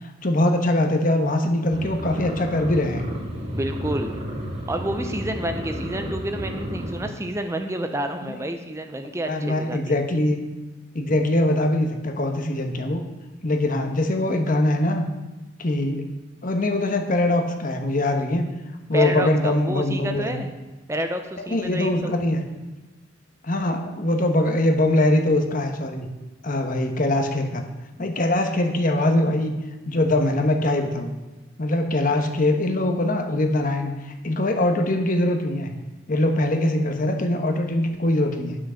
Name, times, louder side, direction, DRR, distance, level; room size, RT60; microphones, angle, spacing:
voice 1, 0.0-3.0 6.0-6.1 8.3-8.4 9.2-10.4 10.9-13.0 13.4-15.0 15.6-16.1 16.4-18.5 18.9-20.4 21.5-22.4 23.4-26.1 26.4-27.6 28.0-29.5 29.9-31.1 31.6-33.9 34.2-35.7 36.1-38.6, left 1 dB, 40° left, 4 dB, 1.0 m, -22 dB
sound 1, 1.7-7.1, equal, 35° right, 2.1 m, -32 dB
voice 2, 3.5-4.1 4.7-10.0 18.9-20.5 20.9-22.2, right 1 dB, 15° right, 6 dB, 0.5 m, -29 dB
10.0 x 6.2 x 6.3 m, 1.1 s
head